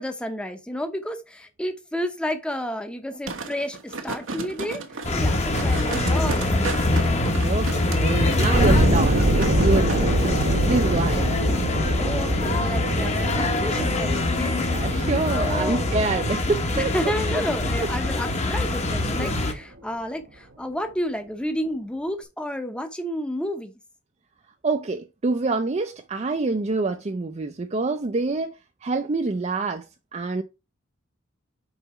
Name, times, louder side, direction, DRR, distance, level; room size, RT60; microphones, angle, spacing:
voice 1, 0.0-4.8 5.1-6.8 12.0-14.8 15.3-15.8 16.7-23.7, equal, 5° left, 0.8 m, -31 dB
sound 1, 3.3-10.0 10.4-10.5, right 3 dB, 85° right, 1.2 m, -34 dB
sound 2, 5.0-19.5, left 2 dB, 35° left, 1.0 m, -24 dB
voice 2, 7.3-11.3 14.7-16.9 17.8-17.9 24.6-29.9 30.1-30.4, right 3 dB, 35° right, 0.5 m, -26 dB
sound 3, 8.5-19.3, right 1 dB, 55° right, 1.1 m, -26 dB
5.5 x 4.0 x 5.7 m
head